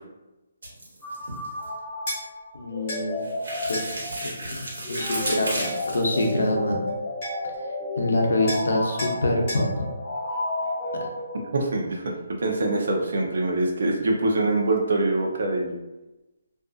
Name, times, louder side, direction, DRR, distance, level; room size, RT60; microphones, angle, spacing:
sound 1, 0.6-1.7 3.2-6.4, right 1 dB, 85° right, 1.1 m, -33 dB
sound 2, 1.0-11.8, left 1 dB, 5° left, 0.6 m, -32 dB
sound 3, 2.1-2.2 2.9-3.0 3.7-3.9 4.9-5.8 6.9-7.0 7.2-7.5 8.5-8.7 9.0-9.2 9.5-9.7, equal, 30° left, 1.0 m, -34 dB
voice 1, 2.5-3.2 3.7-4.6 4.9-6.8 8.0-9.9, left 1 dB, 90° left, 1 dB, 0.6 m, -25 dB
voice 2, 11.5-12.1 12.4-15.8, right 2 dB, 55° right, 0 dB, 0.6 m, -24 dB
2.5 x 2.5 x 2.4 m, 1.0 s
hypercardioid pair, 175°, 0 cm